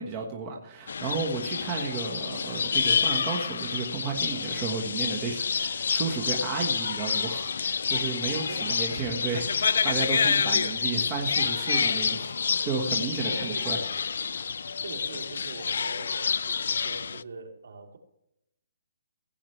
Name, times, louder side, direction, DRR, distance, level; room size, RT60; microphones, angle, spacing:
voice 1, 0.0-12.3 12.6-13.8 14.3-14.4, right 5 dB, 20° right, 0 dB, 1.4 m, -33 dB
sound 1, 0.9-17.2, left 6 dB, 70° left, 0.3 m, -28 dB
voice 2, 8.5-9.2 13.3-13.7 14.7-18.0, right 3 dB, 80° right, 0 dB, 2.9 m, -42 dB
16.5 x 8.6 x 3.3 m, 0.82 s
hypercardioid pair, 170°, 0 cm